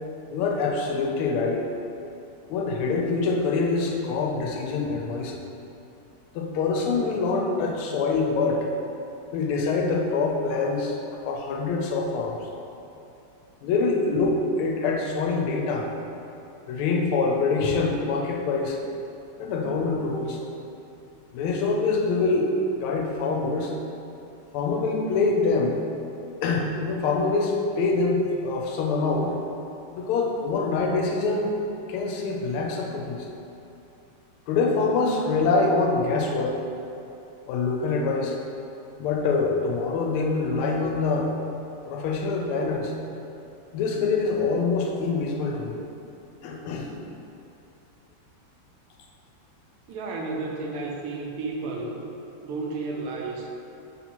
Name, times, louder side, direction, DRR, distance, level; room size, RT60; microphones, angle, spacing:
voice 1, 0.3-1.7 2.5-5.4 6.3-8.7 9.3-12.5 13.6-15.9 16.7-18.8 19.4-20.4 21.3-23.8 24.5-25.8 26.4-29.4 29.9-31.5 31.9-33.3 34.5-36.6 37.5-38.4 39.0-41.3 41.8-42.9 43.7-45.8 46.4-46.9, left 3 dB, 85° left, 0 dB, 1.5 m, -25 dB
voice 2, 49.9-52.0 52.4-53.5, right 3 dB, 90° right, 0 dB, 1.5 m, -32 dB
3.8 x 2.9 x 4.2 m, 2.8 s
omnidirectional pair, 2.3 m